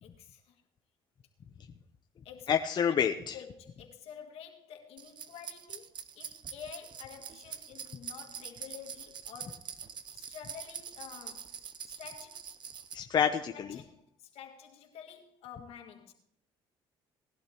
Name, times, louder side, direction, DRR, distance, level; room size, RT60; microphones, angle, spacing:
voice 1, 0.0-0.6 2.2-2.5 3.3-9.8 10.1-11.6 11.9-12.5 13.5-16.1, left 8 dB, 65° left, 2.0 m, -49 dB
voice 2, 2.5-3.4 12.9-13.8, left 8 dB, 40° left, 0.8 m, -28 dB
sound 1, 5.0-12.9, right 7 dB, 45° right, 0.7 m, -45 dB
18.5 x 11.5 x 3.0 m
supercardioid pair, 90°, 11 cm